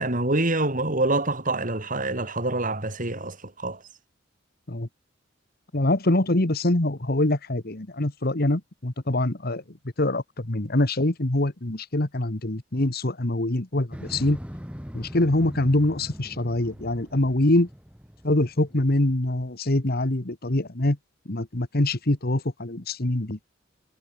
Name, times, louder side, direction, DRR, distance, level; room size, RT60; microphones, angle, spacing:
voice 1, 0.0-3.8, right 2 dB, 45° right, 5.5 m, -26 dB
voice 2, 5.7-9.6 10.0-14.4 14.9-17.7 18.2-21.0 21.3-23.4, left 1 dB, 50° left, 1.8 m, -24 dB
Motorcycle, 13.9-19.1, equal, 5° right, 3.6 m, -41 dB
head